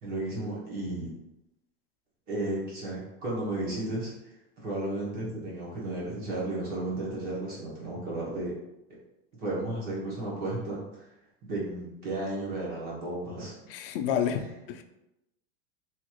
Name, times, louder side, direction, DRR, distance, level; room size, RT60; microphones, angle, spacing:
voice 1, 0.0-1.1 2.3-4.1 4.6-8.6 9.4-11.1 11.4-13.5, right 2 dB, 30° right, -5 dB, 1.0 m, -33 dB
voice 2, 13.7-14.8, left 8 dB, 65° left, 7 dB, 0.5 m, -30 dB
3.0 x 2.5 x 2.9 m, 0.90 s
supercardioid pair, 165°, 30 cm